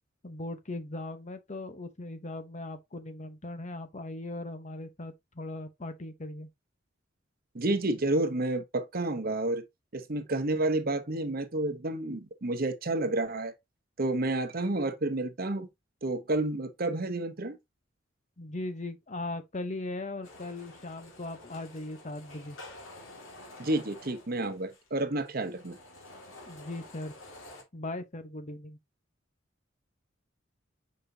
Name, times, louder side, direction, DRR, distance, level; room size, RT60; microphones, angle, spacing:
voice 1, 0.2-6.5 18.4-22.6 26.5-27.1 27.7-28.8, left 2 dB, 35° left, 0.9 m, -39 dB
voice 2, 7.5-9.6 9.9-13.5 14.0-15.7 16.0-17.6 23.6-25.8, right 2 dB, 50° right, 1.0 m, -30 dB
sound 1, 20.2-27.6, left 2 dB, 80° left, 2.1 m, -50 dB
6.8 x 5.2 x 2.8 m
head